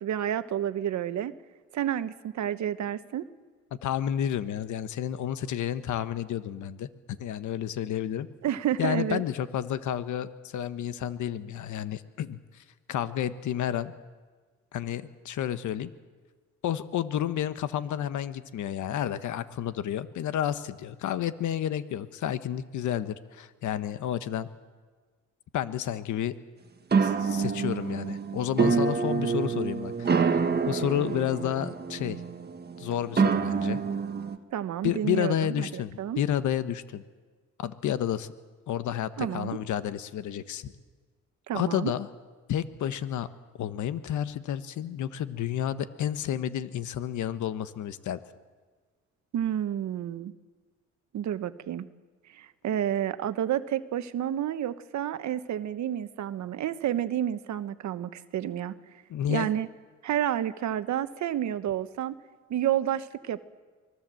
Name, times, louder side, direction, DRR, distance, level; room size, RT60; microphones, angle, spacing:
voice 1, 0.0-1.3 1.7-3.3 8.4-9.2 34.5-35.7 36.0-36.2 39.2-39.6 41.5-41.9 49.3-50.3 51.1-51.9 52.3-58.7 59.3-59.7 60.0-62.2 62.5-63.4, right 11 dB, 70° right, 12 dB, 1.1 m, -30 dB
voice 2, 3.8-8.3 8.8-12.6 12.9-13.9 14.7-15.9 16.6-24.5 25.5-26.3 27.0-32.2 32.8-33.8 34.8-35.9 36.2-37.0 37.6-38.3 38.7-40.7 41.5-42.1 42.5-43.3 43.6-48.2 59.1-59.5, left 10 dB, 75° left, 12 dB, 1.2 m, -31 dB
sound 1, 26.9-34.4, right 5 dB, 35° right, 1.6 m, -27 dB
24.5 x 19.5 x 7.7 m, 1.4 s
cardioid pair, 90°, 30 cm